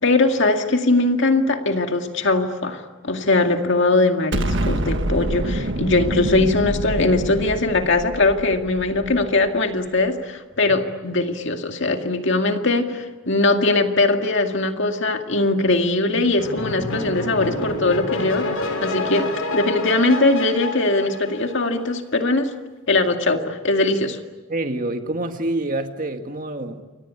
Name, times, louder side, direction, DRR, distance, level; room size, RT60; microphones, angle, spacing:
voice 1, 0.0-18.5 18.8-22.5 22.9-24.2, left 2 dB, 55° left, 5 dB, 2.2 m, -20 dB
Explosion, 4.3-9.5, right 1 dB, 55° right, 1.6 m, -26 dB
sound 1, 16.4-21.8, left 2 dB, 80° left, 6.9 m, -28 dB
voice 2, 24.5-26.8, right 2 dB, 35° right, 6 dB, 1.9 m, -26 dB
28.5 x 23.0 x 8.4 m, 1.2 s
head